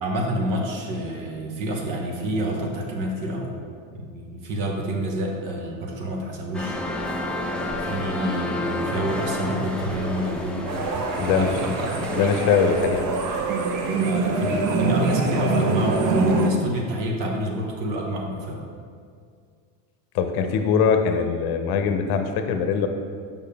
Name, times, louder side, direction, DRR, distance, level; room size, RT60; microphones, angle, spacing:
voice 1, 0.0-3.5 3.9-6.8 7.8-10.8 11.2-12.3 13.9-18.6, equal, 60° right, 1 dB, 1.4 m, -28 dB
sound 1, 6.5-12.9, left 1 dB, ahead, 0.7 m, -30 dB
sound 2, 10.7-16.5, right 4 dB, 40° right, 0.7 m, -24 dB
voice 2, 11.2-11.7 12.1-13.1 20.1-22.9, left 6 dB, 50° left, 7 dB, 0.8 m, -22 dB
6.7 x 5.5 x 3.4 m, 2.1 s
supercardioid pair, 105°, 49 cm